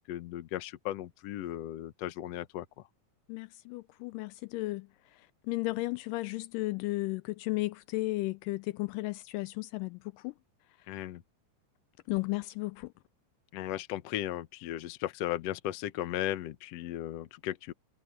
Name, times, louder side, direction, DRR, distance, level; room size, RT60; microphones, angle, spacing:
voice 1, 0.1-2.7 10.9-11.2 13.5-17.7, left 13 dB, 65° left, 1.7 m, -36 dB
voice 2, 3.3-10.3 10.8-10.9 12.1-12.9, left 21 dB, 80° left, 2.1 m, -34 dB
omnidirectional pair, 3.9 m